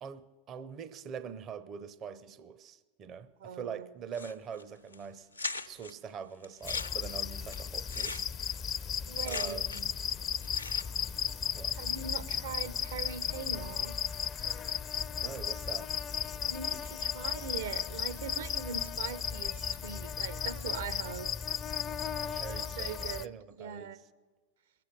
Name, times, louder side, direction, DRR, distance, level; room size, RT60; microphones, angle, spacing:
voice 1, 0.0-5.3 5.6-8.8 9.2-10.0 11.5-11.8 15.2-15.9 22.3-24.1, right 7 dB, 35° right, 0.6 m, -44 dB
voice 2, 3.4-3.9 9.1-9.6 11.7-14.0 16.4-21.3 22.5-23.3 23.6-24.0, right 6 dB, 65° right, 0.8 m, -41 dB
sound 1, 4.1-4.6 4.9-5.0 5.3-5.9 6.4-10.0 10.3-11.1, left 3 dB, 90° left, 0.7 m, -40 dB
sound 2, 6.6-23.3, left 8 dB, 30° left, 0.4 m, -35 dB
22.5 x 7.6 x 5.2 m
figure-of-eight pair, 90°, 0 cm